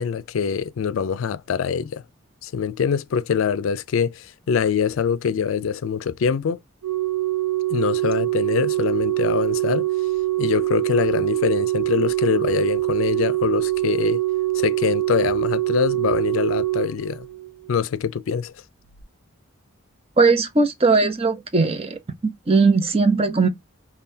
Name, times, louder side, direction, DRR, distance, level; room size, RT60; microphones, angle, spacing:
voice 1, 0.0-2.0 2.4-6.6 7.7-9.9 10.4-14.2 14.5-17.3 17.7-18.5, left 7 dB, 75° left, 0.4 m, -24 dB
Organ, 6.8-17.7 18.8-19.0, right 16 dB, 65° right, 0.6 m, -24 dB
voice 2, 20.2-22.0 22.5-23.5, right 4 dB, 30° right, 0.7 m, -18 dB
5.5 x 2.3 x 2.7 m
head